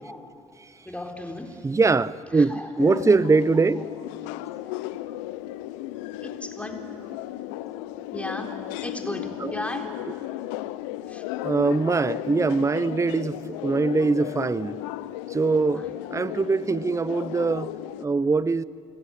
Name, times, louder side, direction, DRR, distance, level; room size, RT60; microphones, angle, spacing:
voice 1, 0.0-0.3 0.9-1.7 2.3-2.7 3.1-3.2 6.2-6.8 8.1-9.9 11.1-11.2 15.7-15.9 16.3-16.4, left 1 dB, 10° left, 4.0 m, -36 dB
voice 2, 1.6-3.8 9.4-9.5 11.4-14.8 15.3-18.6, right 4 dB, 20° right, 0.6 m, -23 dB
sound 1, 2.8-18.1, left 15 dB, 80° left, 0.6 m, -35 dB
28.0 x 16.5 x 9.8 m
hypercardioid pair, 45°, 16 cm